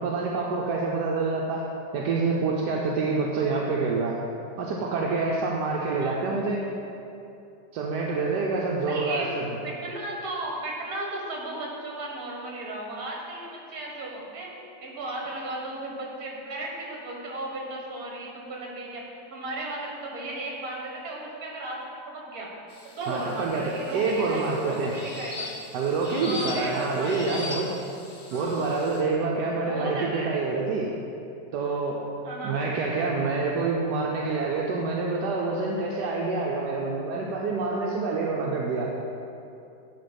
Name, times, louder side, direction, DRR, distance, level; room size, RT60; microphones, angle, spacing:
voice 1, 0.0-1.6 1.9-4.1 4.6-6.6 7.7-9.4 23.1-24.9 25.7-27.7 28.3-30.9 31.5-32.0 32.4-38.9, right 3 dB, 80° right, -2 dB, 1.3 m, -27 dB
voice 2, 6.0-6.4 8.8-9.3 9.6-14.5 14.8-19.0 19.3-21.8 22.0-22.5 22.8-25.5 26.2-27.6 28.3-28.6 29.6-30.4 32.2-32.6, right 2 dB, 60° right, -2 dB, 1.8 m, -35 dB
sound 1, 22.7-29.0, left 3 dB, 30° left, 0.6 m, -40 dB
11.0 x 3.9 x 5.1 m, 2.7 s
omnidirectional pair, 1.8 m